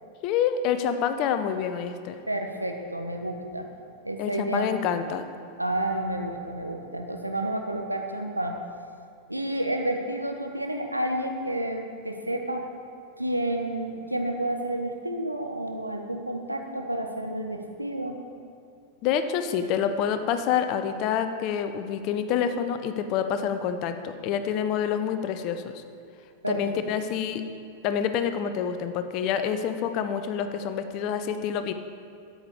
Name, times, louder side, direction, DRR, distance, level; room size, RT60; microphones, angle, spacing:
voice 1, 0.2-2.2 4.2-5.3 19.0-25.8 26.5-27.4 27.8-31.7, left 8 dB, 40° left, 9 dB, 0.8 m, -27 dB
voice 2, 2.3-3.7 4.0-5.0 5.6-8.6 9.3-12.6 13.2-18.2 26.4-26.8, right 1 dB, 85° right, 4 dB, 1.1 m, -30 dB
13.0 x 8.9 x 4.9 m, 2.4 s
figure-of-eight pair, 90°, 0 cm